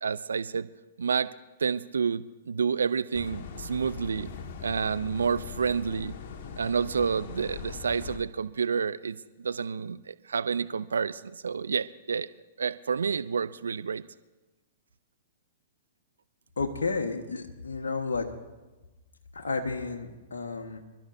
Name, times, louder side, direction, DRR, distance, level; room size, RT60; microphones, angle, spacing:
voice 1, 0.0-0.7 1.0-1.3 1.6-4.3 4.6-6.1 6.6-12.3 12.6-14.0, right 6 dB, 75° right, 15 dB, 0.5 m, -29 dB
sound 1, 3.1-8.2, left 6 dB, 50° left, 1.6 m, -41 dB
voice 2, 16.6-18.3 19.3-20.8, left 4 dB, 75° left, 2 dB, 1.5 m, -31 dB
27.5 x 13.0 x 2.7 m, 1.1 s
figure-of-eight pair, 110°, 0 cm